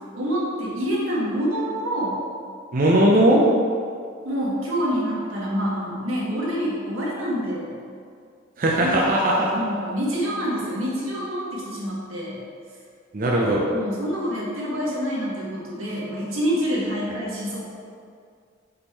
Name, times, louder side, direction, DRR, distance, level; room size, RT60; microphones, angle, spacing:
voice 1, 0.1-2.2 4.2-7.7 8.8-8.9 9.5-12.4 13.7-17.6, equal, 90° right, -5 dB, 1.5 m, -27 dB
voice 2, 2.7-3.4 8.6-9.5 13.1-13.6, right 1 dB, 45° right, -3 dB, 0.6 m, -18 dB
5.1 x 4.4 x 4.3 m, 2.3 s
head